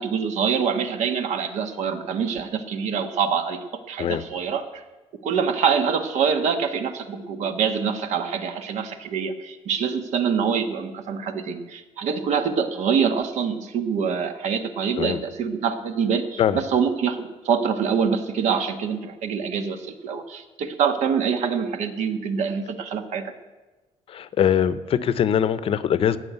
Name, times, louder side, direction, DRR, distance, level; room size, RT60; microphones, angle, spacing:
voice 1, 0.0-3.6 3.9-4.6 5.2-23.3, right 6 dB, 75° right, 8 dB, 1.3 m, -25 dB
voice 2, 24.1-26.2, left 9 dB, 50° left, 14 dB, 0.7 m, -22 dB
15.5 x 6.2 x 9.1 m, 1.2 s
cardioid pair, 145°, 12 cm